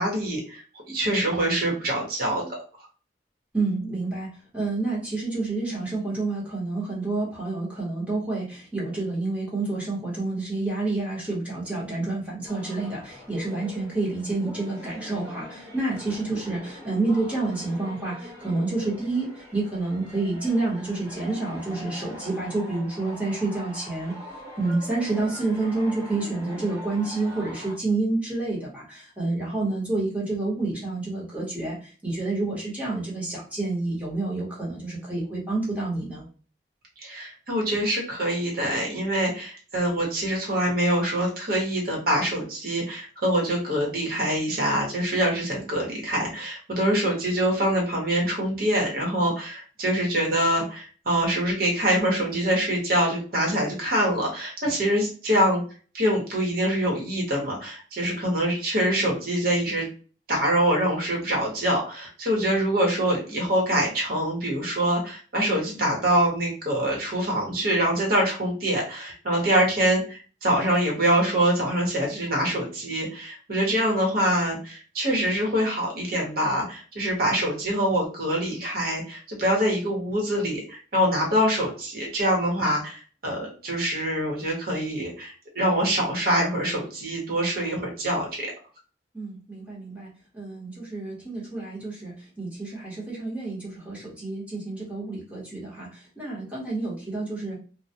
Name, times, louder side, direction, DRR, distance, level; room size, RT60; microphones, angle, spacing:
voice 1, 0.0-2.5 37.0-55.6 55.9-59.9 60.3-88.5, right 1 dB, 55° right, -1 dB, 1.0 m, -25 dB
voice 2, 3.5-24.2 24.6-36.2 89.1-97.6, right 2 dB, 10° right, -6 dB, 0.9 m, -29 dB
sound 1, 12.5-27.8, left 1 dB, 35° right, 1.2 m, -43 dB
2.2 x 2.2 x 2.7 m, 0.38 s
head